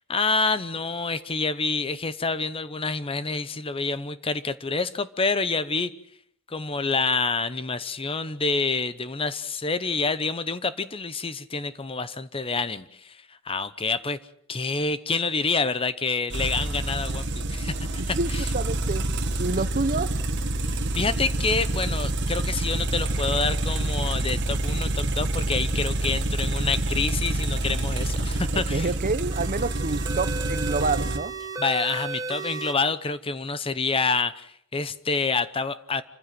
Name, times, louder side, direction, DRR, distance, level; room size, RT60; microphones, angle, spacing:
voice 1, 0.1-5.9 6.5-14.2 14.5-18.5 20.9-28.9 31.6-36.0, left 4 dB, 25° left, 14 dB, 0.8 m, -27 dB
sound 1, 16.3-31.2, right 2 dB, 55° right, 1.8 m, -27 dB
voice 2, 18.2-19.0 19.4-20.1 28.5-31.3, right 3 dB, 40° right, 14 dB, 0.9 m, -28 dB
sound 2, 29.3-32.7, right 3 dB, 15° right, 1.3 m, -35 dB
27.0 x 15.0 x 7.7 m, 0.67 s
head